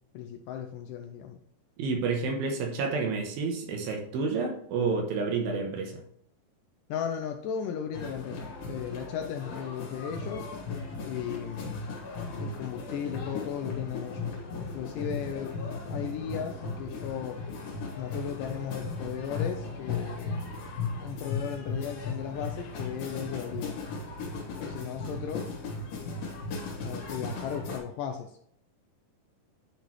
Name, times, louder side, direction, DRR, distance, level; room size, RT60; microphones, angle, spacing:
voice 1, 0.1-1.4 6.9-10.5 11.0-11.8 12.3-17.4 18.0-20.4 21.0-23.8 24.6-25.5 26.8-28.4, left 8 dB, 80° left, 4 dB, 1.9 m, -36 dB
voice 2, 1.8-6.0, right 4 dB, 85° right, 3 dB, 2.8 m, -29 dB
sound 1, 7.9-27.8, left 3 dB, 65° left, 3.1 m, -36 dB
9.7 x 3.9 x 3.1 m, 0.68 s
omnidirectional pair, 4.2 m